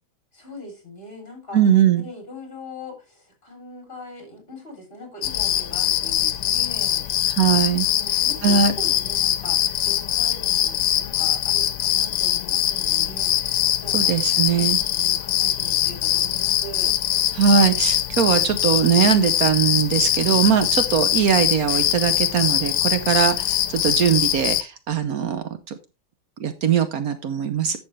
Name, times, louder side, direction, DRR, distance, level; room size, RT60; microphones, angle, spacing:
voice 1, 0.3-1.6 1.9-7.0 7.9-16.9, left 1 dB, 35° left, 2 dB, 3.8 m, -41 dB
voice 2, 1.5-2.0 7.4-7.9 8.4-8.7 13.9-14.8 17.4-25.8 26.4-27.8, right 7 dB, 65° right, 10 dB, 1.2 m, -20 dB
sound 1, 5.2-24.6, left 12 dB, 85° left, 1.2 m, -22 dB
10.5 x 6.9 x 3.3 m, 0.30 s
omnidirectional pair, 1.8 m